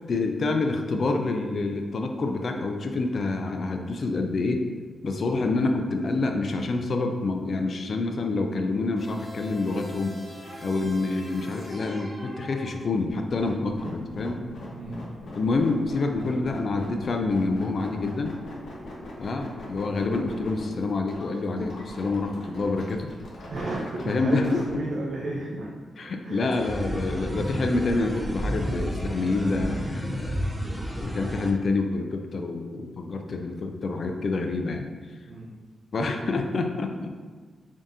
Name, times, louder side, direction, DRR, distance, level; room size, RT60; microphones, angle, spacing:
voice 1, 0.1-4.6 5.0-10.2 10.6-14.4 15.3-18.4 19.2-23.1 24.1-24.8 26.0-30.5 31.0-34.9 35.9-37.1, left 3 dB, 50° left, 4 dB, 0.4 m, -27 dB
sound 1, 9.0-13.3, equal, 10° left, 0.9 m, -42 dB
sound 2, 13.1-24.7, left 1 dB, 75° left, 0.9 m, -42 dB
voice 2, 14.7-15.1 23.5-25.7 26.0-26.5 35.3-35.5, right 2 dB, 70° right, -5 dB, 0.6 m, -33 dB
sound 3, 26.5-31.5, equal, 10° right, 0.5 m, -31 dB
3.7 x 2.7 x 3.6 m, 1.4 s
cardioid pair, 100°, 0 cm